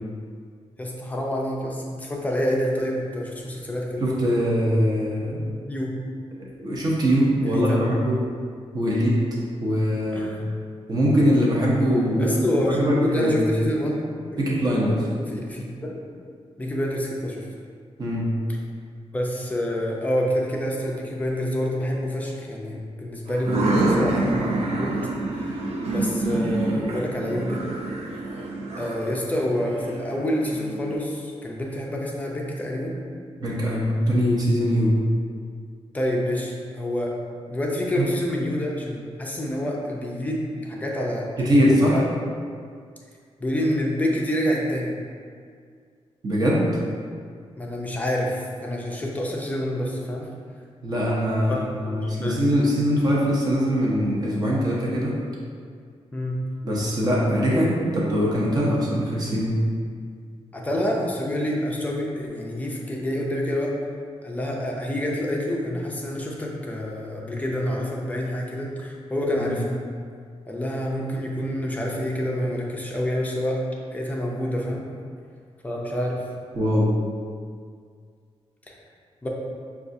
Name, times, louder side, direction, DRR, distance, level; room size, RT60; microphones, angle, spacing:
voice 1, 0.8-4.0 5.7-5.9 7.4-7.8 10.1-10.4 12.2-16.0 16.6-17.5 19.1-24.9 25.3-27.7 28.8-33.0 35.9-37.1 37.5-41.5 41.9-42.2 43.4-45.0 47.6-50.3 51.5-52.5 56.1-56.4 60.5-63.8 64.2-69.7 70.5-73.6 73.9-74.9 75.6-76.3 78.7-78.8 79.2-79.3, equal, 15° left, -2 dB, 0.4 m, -27 dB
voice 2, 4.0-5.6 6.6-8.2 8.7-9.2 9.6-10.3 10.9-12.3 12.7-13.5 14.4-15.0 18.0-18.3 33.4-34.9 38.0-38.1 41.4-42.0 46.2-46.7 50.8-55.1 56.6-59.6 69.4-69.5 76.5-76.9, equal, 35° right, -5 dB, 0.8 m, -22 dB
sound 1, 23.3-30.9, right 2 dB, 70° right, 0.5 m, -27 dB
6.0 x 2.4 x 2.6 m, 2.1 s
wide cardioid pair, 175°, 11 cm